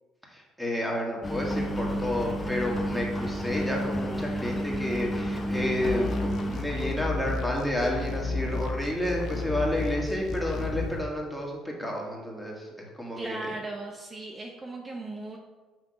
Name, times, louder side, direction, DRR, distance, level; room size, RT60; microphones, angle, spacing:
voice 1, 0.3-13.5, left 1 dB, 5° left, -2 dB, 1.9 m, -30 dB
Engine, 1.2-11.0, equal, 25° left, 0.9 m, -33 dB
sound 1, 5.8-10.8, left 3 dB, 65° left, 0.7 m, -33 dB
voice 2, 13.2-15.4, right 2 dB, 30° right, 0 dB, 0.8 m, -37 dB
6.1 x 3.5 x 5.7 m, 1.3 s
hypercardioid pair, 65°, 0 cm